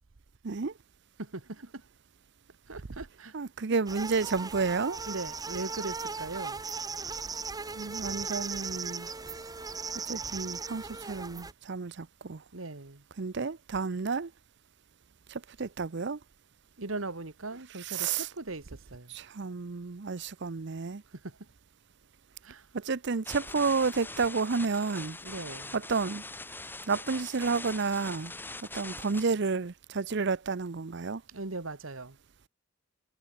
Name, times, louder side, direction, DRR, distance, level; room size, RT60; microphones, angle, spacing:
voice 1, 1.2-1.8 2.7-3.3 5.1-6.6 12.5-13.0 16.8-19.1 21.1-21.4 22.4-22.7 25.2-25.8 31.3-32.2, right 2 dB, 85° right, 1.9 m, -39 dB
voice 2, 3.3-5.0 7.7-9.1 10.1-12.4 13.2-14.3 15.3-16.2 17.8-18.3 19.1-21.0 22.7-25.2 25.7-26.2 26.9-28.3 28.7-31.2, right 4 dB, 60° right, 0.7 m, -31 dB
sound 1, 3.9-11.5, right 4 dB, 20° right, 0.9 m, -38 dB
sound 2, 23.3-29.3, left 2 dB, 10° left, 3.2 m, -42 dB
head